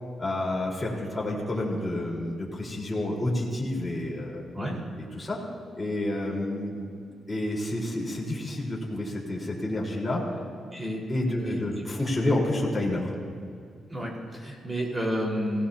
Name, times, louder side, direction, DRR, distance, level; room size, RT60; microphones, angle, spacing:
voice 1, 0.2-4.5 4.9-5.4 5.7-6.9 7.3-10.2 11.1-13.1, left 1 dB, 15° left, -4 dB, 4.5 m, -29 dB
voice 2, 10.7-11.0 11.4-11.9 13.9-15.7, equal, 20° right, -2 dB, 4.9 m, -31 dB
27.5 x 17.5 x 2.9 m, 2.3 s
cardioid pair, 95°, 0 cm